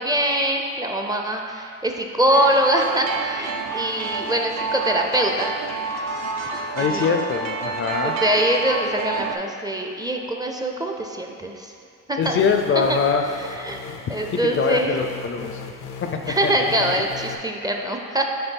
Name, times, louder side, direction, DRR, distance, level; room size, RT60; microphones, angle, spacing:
voice 1, 0.0-5.5 6.8-7.1 8.0-11.7 12.1-12.4 13.6-13.8 14.1-14.9 16.3-18.2, right 1 dB, 15° right, 2 dB, 0.5 m, -23 dB
sound 1, 2.3-9.4, right 4 dB, 60° right, 0.6 m, -28 dB
voice 2, 6.7-8.1 12.2-13.2 14.3-15.6 16.4-16.5 16.8-16.9, left 6 dB, 45° left, 5 dB, 0.5 m, -23 dB
sound 2, 12.2-17.4, left 5 dB, 85° left, 0.6 m, -38 dB
6.8 x 3.5 x 4.5 m, 2.4 s
cardioid pair, 90°, 30 cm